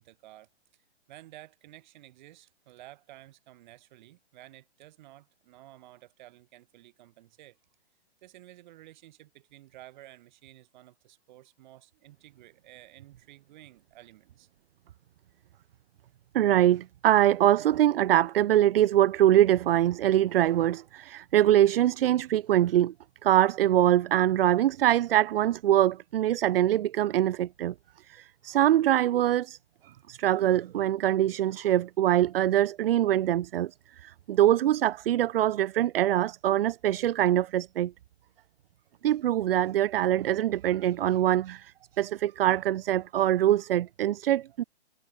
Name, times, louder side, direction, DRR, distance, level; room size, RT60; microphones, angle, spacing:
voice 1, 0.0-7.6 8.2-14.5, right 15 dB, 40° right, 7.0 m, -53 dB
voice 2, 16.3-22.9 23.2-27.7 28.1-29.6 30.1-33.7 34.0-37.9 39.0-44.6, right 12 dB, 60° right, 0.4 m, -23 dB
hypercardioid pair, 145°, 34 cm